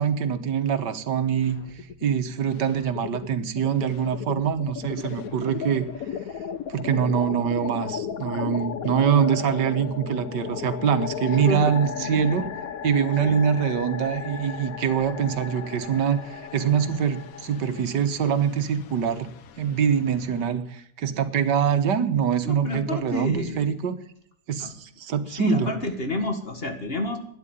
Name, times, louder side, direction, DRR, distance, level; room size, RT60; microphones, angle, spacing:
voice 1, 0.0-1.6 2.0-5.9 6.7-12.5 12.8-19.3 19.6-24.0 24.5-25.7, right 7 dB, 85° right, 10 dB, 1.8 m, -24 dB
sound 1, 1.4-2.2 2.4-20.5, left 8 dB, 60° left, 1.2 m, -36 dB
voice 2, 11.4-12.3 13.2-13.4 22.4-23.7 24.6-24.7 25.3-27.2, left 1 dB, 35° left, 6 dB, 1.9 m, -30 dB
12.5 x 9.6 x 9.3 m, 0.67 s
omnidirectional pair, 1.8 m